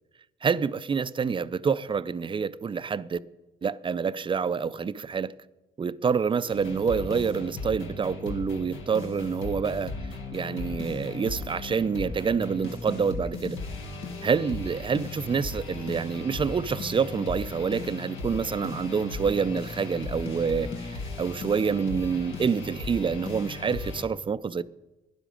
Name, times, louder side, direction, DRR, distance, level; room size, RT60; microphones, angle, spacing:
voice 1, 0.4-3.2 3.6-5.3 5.8-9.9 10.3-13.6 14.2-24.6, right 6 dB, 25° right, 0.4 m, -27 dB
sound 1, 6.5-24.0, left 3 dB, 80° left, 1.6 m, -37 dB
12.0 x 10.0 x 5.1 m
cardioid pair, 90°, 20 cm